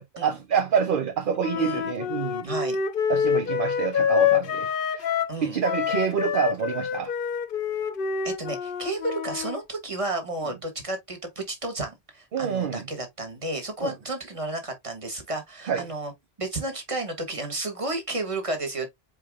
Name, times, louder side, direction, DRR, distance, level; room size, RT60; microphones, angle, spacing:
voice 1, 0.0-2.5 3.1-5.1 5.4-7.1 12.3-12.9 13.8-13.9 15.6-15.9, right 7 dB, 55° right, 0.8 m, -27 dB
Wind instrument woodwind instrument, 1.4-5.4 5.6-9.6, left 7 dB, 60° left, 0.8 m, -27 dB
voice 2, 1.5-1.9 2.4-2.8 5.3-5.6 8.2-16.1 16.4-18.9, right 2 dB, 30° right, 1.6 m, -32 dB
4.6 x 3.1 x 3.6 m
omnidirectional pair, 1.1 m